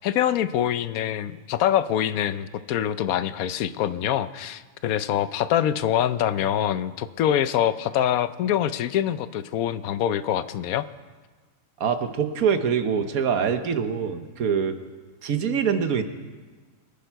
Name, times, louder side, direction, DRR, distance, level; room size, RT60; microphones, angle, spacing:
voice 1, 0.0-10.8, left 10 dB, 85° left, 14 dB, 1.1 m, -25 dB
voice 2, 11.8-14.8 15.2-16.0, right 7 dB, 85° right, 9 dB, 1.4 m, -24 dB
24.5 x 10.5 x 4.6 m, 1.4 s
omnidirectional pair, 1.5 m